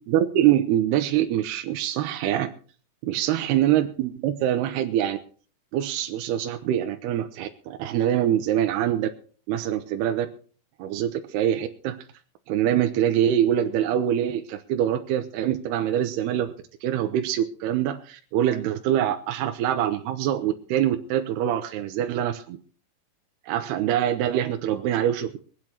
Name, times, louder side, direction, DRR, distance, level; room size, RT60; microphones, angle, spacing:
voice 1, 0.1-2.5 3.0-5.2 5.7-9.1 9.5-10.3 10.8-12.0 12.5-16.5 16.8-22.6 23.5-25.4, right 11 dB, 80° right, 6 dB, 2.9 m, -24 dB
23.0 x 8.5 x 4.5 m, 0.40 s
omnidirectional pair, 4.7 m